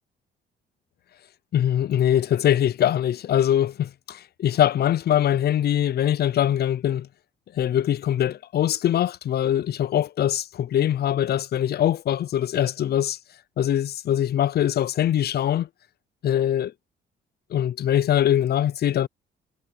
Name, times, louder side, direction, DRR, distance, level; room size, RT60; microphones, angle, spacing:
voice 1, 1.5-7.1 7.5-13.2 13.6-15.7 16.2-16.7 17.5-19.1, left 11 dB, 55° left, 0.5 m, -22 dB
cardioid pair, 90°, 20 cm